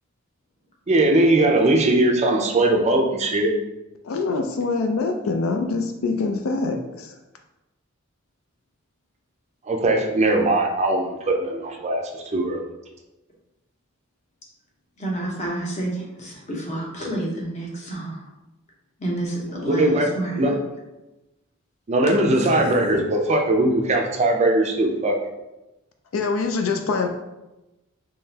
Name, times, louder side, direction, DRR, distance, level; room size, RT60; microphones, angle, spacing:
voice 1, 0.9-3.5 9.7-12.6 19.7-20.1 20.4-20.5 21.9-25.2, right 1 dB, 30° right, 0.4 m, -20 dB
voice 2, 4.0-7.1 26.1-27.1, left 3 dB, 70° left, 0.4 m, -24 dB
voice 3, 15.0-18.3 19.0-20.6 22.4-22.7, right 1 dB, 35° left, 0.9 m, -29 dB
3.7 x 3.1 x 2.8 m
head